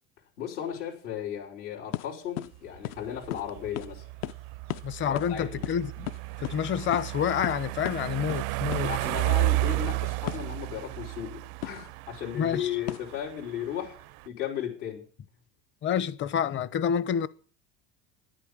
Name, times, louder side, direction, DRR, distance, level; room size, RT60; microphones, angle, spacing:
voice 1, 0.4-4.0 5.0-5.6 8.8-14.0 14.2-15.0, left 9 dB, 85° left, 5.7 m, -35 dB
sound 1, 1.9-2.1 2.4-2.5 2.8-3.0 3.3-3.5 3.8-3.9 4.2-4.4 4.7-4.8 5.1-5.3 5.6-6.6 6.9-7.1 7.4-7.6 7.8-8.0 8.3-8.4 8.7-8.9 10.3-10.5 11.6-11.8 12.9-13.1, left 16 dB, 50° left, 0.6 m, -35 dB
sound 2, 2.6-14.3, right 20 dB, 60° right, 0.5 m, -33 dB
voice 2, 4.8-6.1 6.4-8.9 12.3-12.8 15.8-17.3, left 8 dB, 35° left, 0.9 m, -28 dB
11.0 x 9.1 x 8.7 m
supercardioid pair, 125°, 34 cm